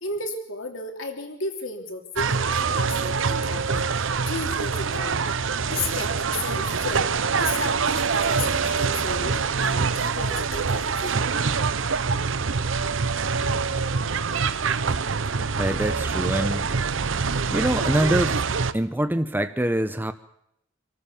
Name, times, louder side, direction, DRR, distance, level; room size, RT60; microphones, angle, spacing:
voice 1, 0.0-5.2 5.6-7.1 7.4-11.2, left 3 dB, 70° left, 4 dB, 3.2 m, -34 dB
sound 1, 2.2-18.7, right 5 dB, 70° right, 0.8 m, -25 dB
voice 2, 15.6-16.7 17.5-18.4 18.7-20.1, right 1 dB, 10° right, 9 dB, 0.8 m, -24 dB
26.0 x 14.0 x 7.2 m, 0.77 s
head